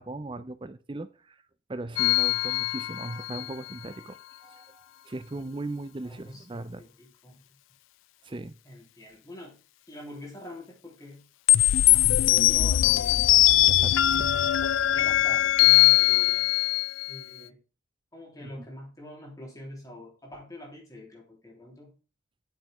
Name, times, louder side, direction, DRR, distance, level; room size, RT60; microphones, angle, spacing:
voice 1, 0.0-1.4 1.7-4.2 4.4-6.8 8.2-8.6 13.7-14.3, right 2 dB, 25° right, 0.5 m, -38 dB
sound 1, 2.0-3.5 11.5-17.2, left 15 dB, 80° left, 0.4 m, -21 dB
voice 2, 6.1-7.4 8.6-9.6 9.9-11.2 11.9-14.5 14.9-16.5 17.1-17.6 18.1-21.9, left 1 dB, 20° left, 3.3 m, -44 dB
8.4 x 6.7 x 3.4 m
head